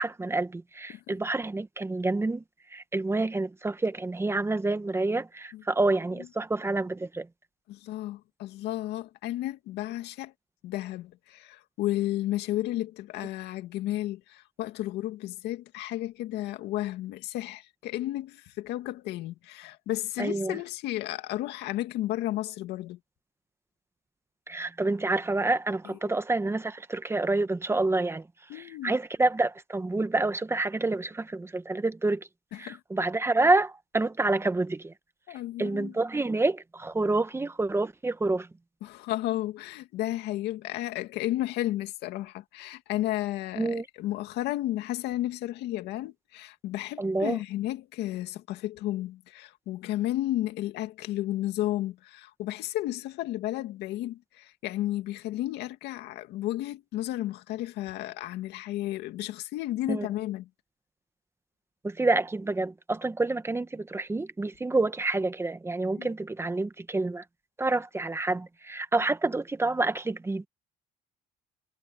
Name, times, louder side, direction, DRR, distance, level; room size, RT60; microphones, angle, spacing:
voice 1, 0.0-2.4 2.7-7.3 20.2-20.6 24.5-28.3 28.5-32.3 32.6-34.9 35.6-38.5 43.6-43.8 47.0-47.4 59.9-60.1 61.8-67.2 67.6-70.5, right 2 dB, 15° right, 1.1 m, -28 dB
voice 2, 7.7-10.3 10.6-23.0 25.9-26.0 28.5-29.0 32.5-32.8 35.3-35.9 38.8-60.5 66.0-66.1, left 15 dB, 85° left, 2.3 m, -33 dB
cardioid pair, 110°, 17 cm